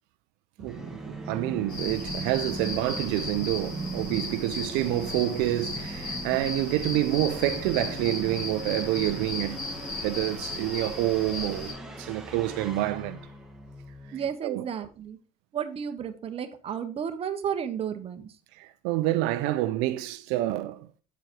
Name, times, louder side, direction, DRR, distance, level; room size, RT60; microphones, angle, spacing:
Musical instrument, 0.6-14.3, right 2 dB, 5° right, 1.3 m, -39 dB
voice 1, 0.6-9.6 10.0-13.2 14.4-14.6 18.5-20.9, right 15 dB, 80° right, 0.5 m, -28 dB
sound 1, 1.7-11.7, left 2 dB, 60° left, 4.7 m, -36 dB
voice 2, 14.1-15.2 15.5-18.3, right 8 dB, 35° right, 0.9 m, -32 dB
8.1 x 4.7 x 4.4 m
cardioid pair, 130°, 17 cm